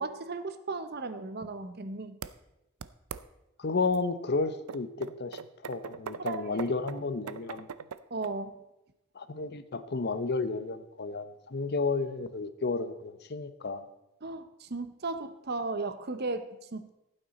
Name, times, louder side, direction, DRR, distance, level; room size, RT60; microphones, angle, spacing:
voice 1, 0.0-2.2 6.2-6.7 8.1-8.6 14.2-16.9, right 3 dB, 45° right, 11 dB, 0.7 m, -36 dB
sound 1, 2.2-2.3 2.8-3.2 3.9-4.0 4.7-8.3, right 6 dB, 80° right, 0.5 m, -40 dB
voice 2, 3.6-7.7 9.1-13.9, left 3 dB, 45° left, 12 dB, 0.7 m, -32 dB
15.5 x 9.0 x 4.2 m, 0.92 s
head